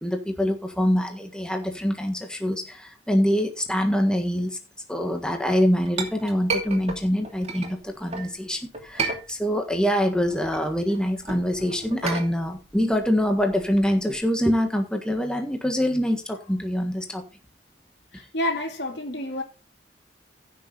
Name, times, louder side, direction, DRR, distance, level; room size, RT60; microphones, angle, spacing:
voice 1, 0.0-4.6 4.9-17.2, equal, 5° left, 1.5 m, -25 dB
Chink clink, 5.4-8.3 8.7-9.8 10.1-14.2, right 4 dB, 40° right, 2.6 m, -33 dB
voice 2, 18.1-19.4, left 1 dB, 70° left, 3.2 m, -29 dB
15.5 x 6.9 x 3.9 m
head